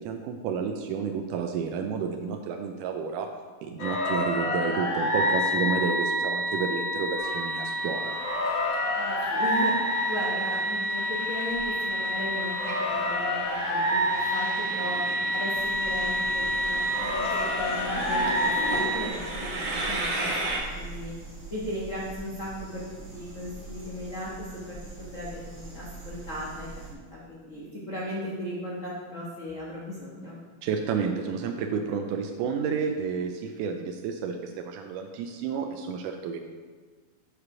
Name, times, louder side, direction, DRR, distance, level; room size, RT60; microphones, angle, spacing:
voice 1, 0.0-3.3 3.6-8.2 30.6-36.4, right 6 dB, 85° right, 4 dB, 2.1 m, -30 dB
sound 1, 3.8-19.1, left 1 dB, 45° left, 1.6 m, -28 dB
Train, 7.2-20.6, right 2 dB, 50° right, 1.4 m, -36 dB
voice 2, 9.0-15.0 15.3-21.1 21.5-22.8 23.1-30.4, left 1 dB, 85° left, -6 dB, 0.6 m, -37 dB
sound 2, 15.5-26.9, right 3 dB, 25° right, 2.0 m, -43 dB
8.2 x 5.0 x 5.9 m, 1.5 s
omnidirectional pair, 3.6 m